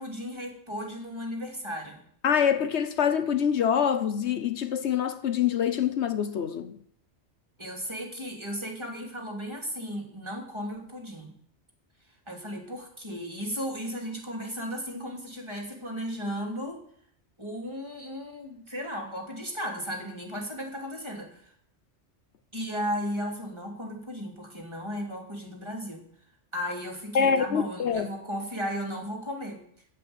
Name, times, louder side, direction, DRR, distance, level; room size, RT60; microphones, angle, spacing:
voice 1, 0.0-2.0 7.6-11.3 12.3-16.8 17.4-21.5 22.5-26.0 26.5-29.6, equal, 25° right, 3.1 m, -35 dB
voice 2, 2.2-6.8 27.1-28.1, left 7 dB, 70° left, 1.1 m, -25 dB
15.5 x 5.9 x 9.0 m
omnidirectional pair, 1.2 m